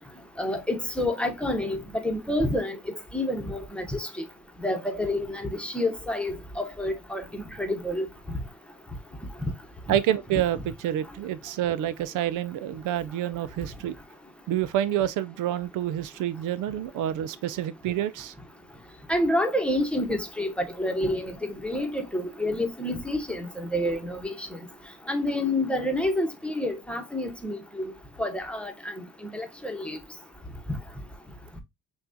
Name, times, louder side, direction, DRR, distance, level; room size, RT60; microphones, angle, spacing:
voice 1, 0.4-2.8 3.1-4.1 4.6-8.1 19.1-24.6 25.1-27.9 28.2-28.9 29.2-30.0, left 1 dB, 5° left, 1.0 m, -28 dB
voice 2, 9.9-13.9 14.5-18.3, right 11 dB, 85° right, 0.5 m, -28 dB
5.9 x 2.4 x 2.7 m
cardioid pair, 90°, 30 cm